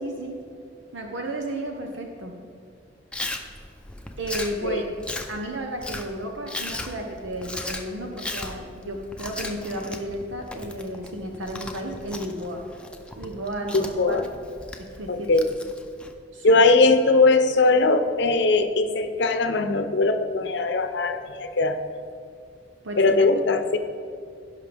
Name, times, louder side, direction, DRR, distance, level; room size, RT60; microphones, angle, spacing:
voice 1, 0.0-0.4 0.9-2.3 4.2-5.0 5.3-12.6 13.1-14.2 14.8-15.3 16.3-16.6 22.8-23.2, right 1 dB, 90° right, 2 dB, 0.9 m, -33 dB
Chewing mastication, 3.1-16.1, left 2 dB, 5° left, 0.6 m, -37 dB
voice 2, 13.7-14.3 15.1-15.5 16.4-21.8 23.0-23.8, left 3 dB, 65° left, 8 dB, 0.7 m, -20 dB
16.5 x 5.7 x 3.4 m, 2.4 s
head